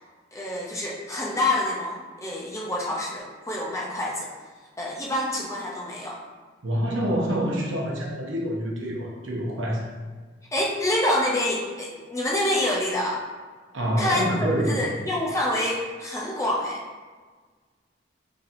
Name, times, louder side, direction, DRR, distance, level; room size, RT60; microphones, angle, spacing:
voice 1, 0.3-4.3 4.8-6.2 10.5-13.2 14.0-16.8, left 1 dB, 15° left, -3 dB, 0.5 m, -27 dB
voice 2, 6.6-9.8 13.7-14.8, equal, 80° right, -2 dB, 0.8 m, -26 dB
4.2 x 3.3 x 2.5 m, 1.4 s
head